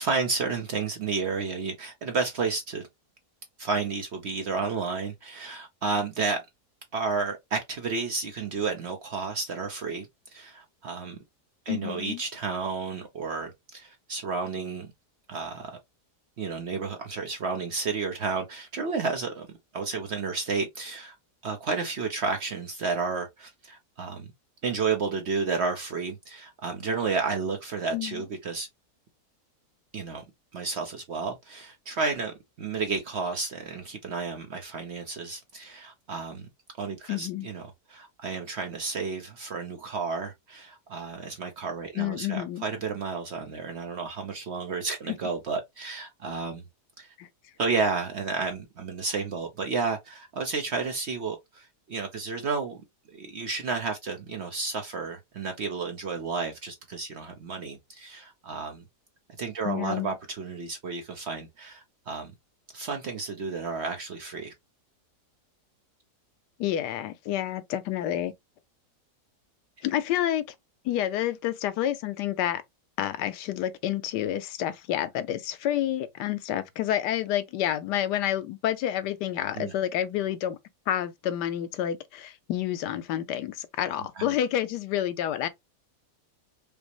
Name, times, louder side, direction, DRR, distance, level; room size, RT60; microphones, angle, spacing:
voice 1, 0.0-2.9 3.6-6.5 6.9-11.2 11.7-14.9 15.3-15.8 16.4-19.5 19.7-21.1 21.4-24.3 24.6-28.7 29.9-30.2 30.5-36.5 36.8-46.6 47.0-47.1 47.6-52.8 53.1-58.8 59.4-62.3 62.7-64.5 79.5-79.7 84.2-84.3, right 4 dB, 60° right, 0.7 m, -31 dB
voice 2, 11.7-12.2 27.9-28.2 37.1-37.5 41.9-42.6 47.2-47.3 59.6-60.1 66.6-68.3 69.8-70.5 70.8-72.6 73.0-80.6 80.9-85.5, left 11 dB, 85° left, 1.2 m, -29 dB
5.1 x 2.0 x 2.9 m
omnidirectional pair, 1.7 m